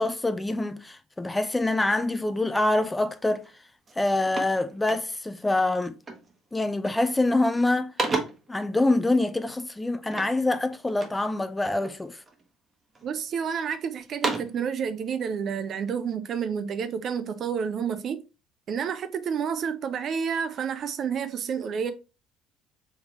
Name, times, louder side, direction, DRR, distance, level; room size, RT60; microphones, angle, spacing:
voice 1, 0.0-3.4 4.0-6.0 6.5-7.9 8.5-12.2, left 2 dB, 15° left, 0.4 m, -25 dB
sound 1, 3.4-3.6 3.9-5.4 6.0-6.4 6.7-7.2 7.5-8.6 10.1-11.3 11.8-12.4 13.0-13.6 14.0-14.7, right 3 dB, 30° right, 1.0 m, -33 dB
voice 2, 13.0-18.2 18.7-21.9, right 7 dB, 45° right, 0.5 m, -29 dB
3.5 x 3.5 x 2.9 m
figure-of-eight pair, 55°, 0 cm